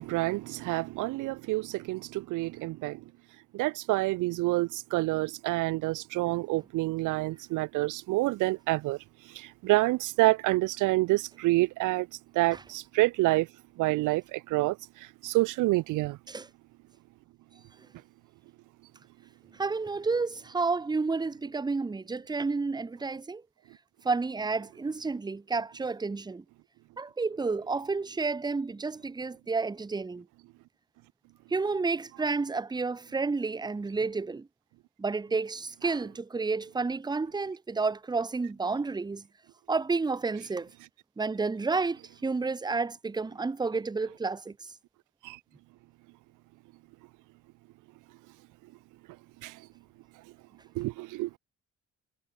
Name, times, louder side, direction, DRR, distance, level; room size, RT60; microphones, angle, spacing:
voice 1, 0.0-3.0 3.5-9.0 9.2-12.1 12.3-13.5 13.8-16.2 45.2-45.4 49.4-49.7 50.7-51.4, right 20 dB, 85° right, 0.5 m, -28 dB
voice 2, 19.5-23.4 24.0-26.4 27.0-30.3 31.5-34.5 35.0-39.2 39.7-40.7 41.2-44.5, right 4 dB, 15° right, 0.7 m, -30 dB
cardioid pair, 90°, 30 cm